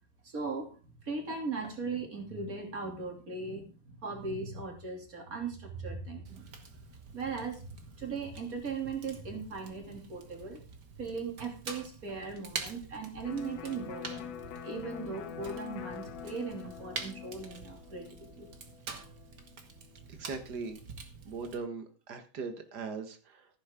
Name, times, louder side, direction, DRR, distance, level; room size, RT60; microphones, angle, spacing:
voice 1, 0.2-0.8 1.0-6.5 7.1-10.6 11.0-14.3 14.6-18.1 18.4-18.5, right 4 dB, 25° right, 3 dB, 3.0 m, -38 dB
Fire, 6.2-21.6, right 5 dB, 45° right, 1.4 m, -46 dB
Electric guitar, 13.3-20.9, left 9 dB, 75° left, 3.1 m, -45 dB
voice 2, 20.2-20.8 21.2-23.5, right 4 dB, 90° right, 7 dB, 0.9 m, -39 dB
15.0 x 10.5 x 3.8 m, 0.32 s
omnidirectional pair, 4.4 m